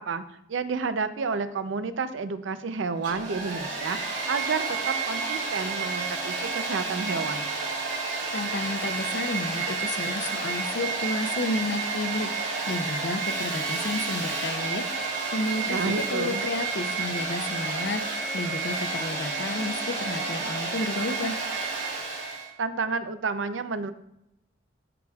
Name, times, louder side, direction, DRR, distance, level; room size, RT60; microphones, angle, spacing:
voice 1, 0.0-7.5 15.7-16.4 22.6-23.9, right 4 dB, 85° right, 11 dB, 0.5 m, -30 dB
Domestic sounds home sounds, 2.9-22.5, right 4 dB, 70° right, 2.7 m, -30 dB
voice 2, 8.3-12.3 12.7-21.4, left 2 dB, 65° left, 9 dB, 0.6 m, -32 dB
11.0 x 4.9 x 2.4 m, 0.82 s
head